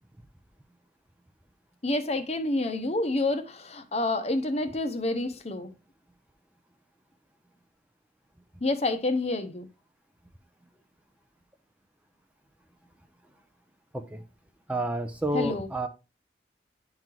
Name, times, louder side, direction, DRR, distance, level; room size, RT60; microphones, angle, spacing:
voice 1, 1.8-5.7 8.6-9.7 15.3-15.7, left 2 dB, 35° left, 0.8 m, -28 dB
voice 2, 14.7-15.9, right 1 dB, 5° right, 0.5 m, -30 dB
10.5 x 3.8 x 2.9 m
head